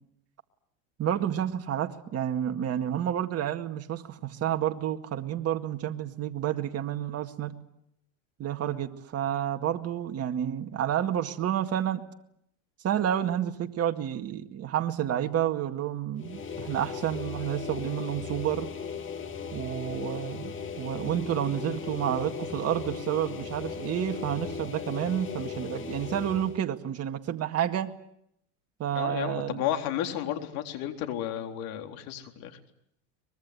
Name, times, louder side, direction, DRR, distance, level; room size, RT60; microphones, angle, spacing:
voice 1, 1.0-7.6 8.4-12.0 12.8-18.7 19.5-28.0 28.8-29.6, right 10 dB, 35° right, 6 dB, 2.0 m, -30 dB
sound 1, 16.2-26.6, left 6 dB, 30° left, 2.6 m, -37 dB
voice 2, 28.9-32.6, left 11 dB, 60° left, 5 dB, 4.0 m, -32 dB
24.0 x 21.5 x 9.6 m, 0.74 s
supercardioid pair, 100°, 40 cm